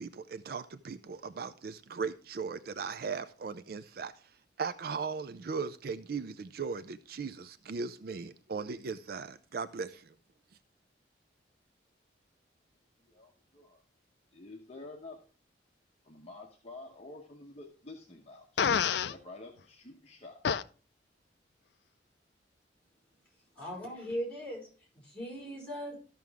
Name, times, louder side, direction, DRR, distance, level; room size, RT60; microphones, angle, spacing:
voice 1, 0.0-4.3 4.6-10.1, right 5 dB, 55° right, 0.4 m, -38 dB
voice 2, 13.0-13.8 14.3-15.3 16.0-20.4, left 2 dB, 35° left, 1.0 m, -49 dB
Fart, 18.6-19.1 20.4-20.6, left 7 dB, 65° left, 0.4 m, -27 dB
voice 3, 23.6-24.7 24.9-25.9, equal, 10° left, 5.2 m, -38 dB
14.0 x 6.1 x 3.5 m
head